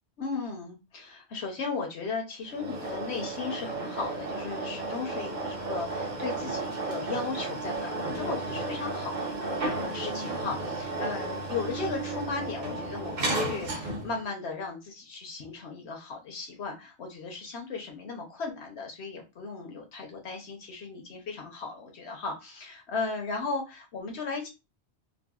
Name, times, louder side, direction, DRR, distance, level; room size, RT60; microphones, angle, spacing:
voice 1, 0.2-24.5, left 4 dB, 75° left, 2 dB, 1.1 m, -36 dB
sound 1, 2.5-14.2, right 2 dB, 45° right, 0.9 m, -33 dB
3.8 x 2.1 x 2.3 m, 0.25 s
omnidirectional pair, 1.1 m